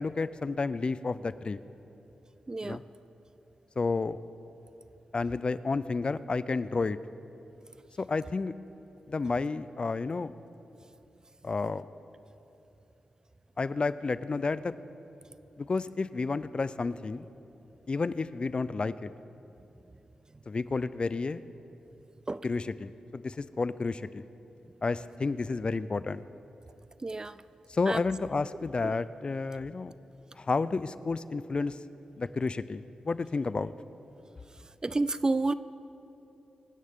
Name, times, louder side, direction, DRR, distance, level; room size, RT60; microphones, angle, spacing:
voice 1, 0.0-1.6 2.6-2.8 3.8-4.2 5.1-7.0 8.0-8.5 9.1-10.3 11.4-11.9 13.6-14.7 15.6-17.3 17.9-19.1 20.5-21.4 22.4-24.2 24.8-26.2 27.7-29.9 30.4-31.8 32.2-33.7, left 4 dB, 45° left, 15 dB, 0.4 m, -31 dB
voice 2, 2.5-2.8 22.3-22.4 27.0-27.3 27.9-28.0 28.8-28.9 34.8-35.5, right 2 dB, 30° right, 16 dB, 0.4 m, -29 dB
24.5 x 10.0 x 3.7 m, 2.9 s
cardioid pair, 55°, 2 cm